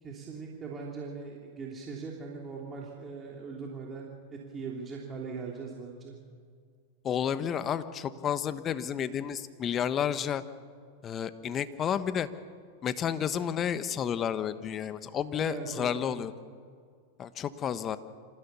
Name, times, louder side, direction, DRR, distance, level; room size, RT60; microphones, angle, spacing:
voice 1, 0.0-6.1 15.4-16.2, right 4 dB, 25° right, -2 dB, 3.3 m, -40 dB
voice 2, 7.0-10.4 11.0-12.3 12.8-16.3 17.2-18.0, left 8 dB, 30° left, 13 dB, 1.2 m, -31 dB
26.5 x 15.5 x 7.0 m, 2.1 s
hypercardioid pair, 100°, 0 cm